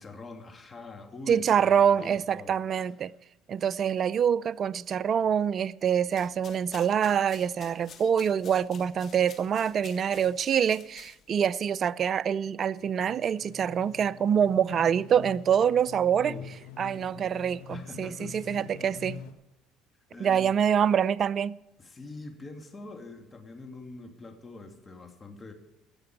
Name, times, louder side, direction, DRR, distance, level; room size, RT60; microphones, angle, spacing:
voice 1, 0.0-2.9 16.2-16.5 17.7-18.7 19.0-19.1 20.1-20.5 21.8-25.5, left 2 dB, 25° left, 2.4 m, -44 dB
voice 2, 1.3-3.1 3.5-16.3 16.8-19.2 20.2-21.6, right 8 dB, 45° right, 0.4 m, -25 dB
sound 1, 6.1-11.4, left 7 dB, 50° left, 1.7 m, -51 dB
sound 2, 12.8-19.3, left 8 dB, 85° left, 1.4 m, -46 dB
17.0 x 6.8 x 8.6 m
supercardioid pair, 75°, 0 cm